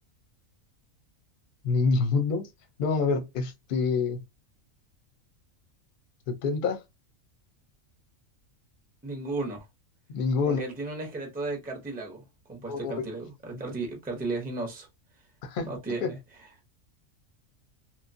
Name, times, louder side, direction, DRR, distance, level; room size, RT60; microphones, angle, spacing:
voice 1, 1.6-2.5 2.8-4.2 6.3-6.8 10.1-10.6 12.7-13.0 13.5-13.6 15.4-15.7 16.0-16.1, left 4 dB, 50° left, 0.7 m, -26 dB
voice 2, 9.0-9.6 10.5-14.9 15.6-16.2, right 3 dB, 10° right, 0.5 m, -34 dB
3.0 x 2.2 x 2.5 m
omnidirectional pair, 1.4 m